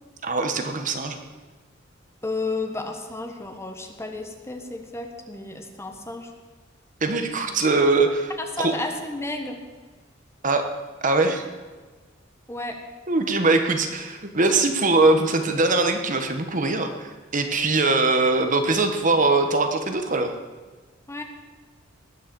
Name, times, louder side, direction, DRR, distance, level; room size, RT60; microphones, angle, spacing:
voice 1, 0.2-1.2 7.0-8.3 8.6-8.8 10.4-10.7 11.0-11.4 13.1-20.3, right 3 dB, 40° right, 6 dB, 1.2 m, -22 dB
voice 2, 2.2-6.3 8.6-9.6 12.5-12.8 21.1-21.2, left 2 dB, 15° left, 4 dB, 1.3 m, -32 dB
19.5 x 6.6 x 6.9 m, 1.3 s
head